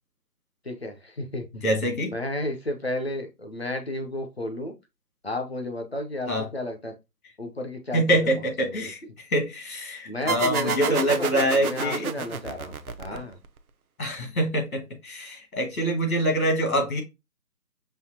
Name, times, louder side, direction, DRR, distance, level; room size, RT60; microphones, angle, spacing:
voice 1, 0.6-1.5 2.0-4.7 5.2-6.9 7.4-8.3 8.6-8.9 10.0-13.4, left 1 dB, 40° left, 0.7 m, -32 dB
voice 2, 1.6-2.1 6.3-6.5 7.9-12.0 13.1-13.2 14.0-17.0, equal, 55° left, 1.8 m, -25 dB
sound 1, 10.3-13.6, right 6 dB, 60° right, 0.6 m, -30 dB
5.5 x 2.7 x 2.7 m
figure-of-eight pair, 170°, 49 cm